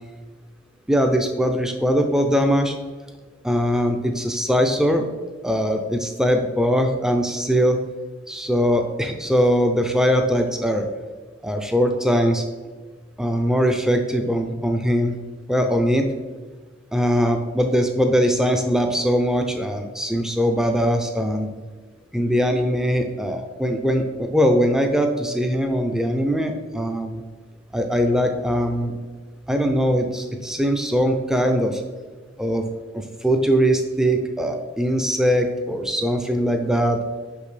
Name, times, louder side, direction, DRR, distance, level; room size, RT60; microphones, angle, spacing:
voice 1, 0.9-2.7 3.4-5.1 5.4-7.8 8.3-10.9 11.4-12.4 13.2-15.2 15.5-16.1 16.9-21.5 22.1-27.2 27.7-28.9 29.5-31.8 32.4-32.6 32.9-37.0, equal, 5° right, 5 dB, 0.4 m, -21 dB
5.7 x 5.2 x 3.2 m, 1.5 s
head